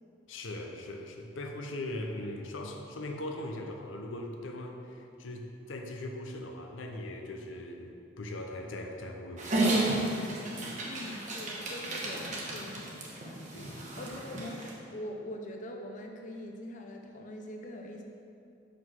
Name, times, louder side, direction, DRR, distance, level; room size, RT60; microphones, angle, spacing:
voice 1, 0.3-9.9 10.6-11.0 13.5-13.8, left 1 dB, 90° left, 3 dB, 0.7 m, -40 dB
Dog, 9.4-14.7, right 2 dB, 40° right, 1.0 m, -33 dB
voice 2, 10.8-13.4 13.6-18.0, left 1 dB, 40° left, 2 dB, 0.5 m, -43 dB
5.6 x 5.1 x 6.0 m, 2.6 s
head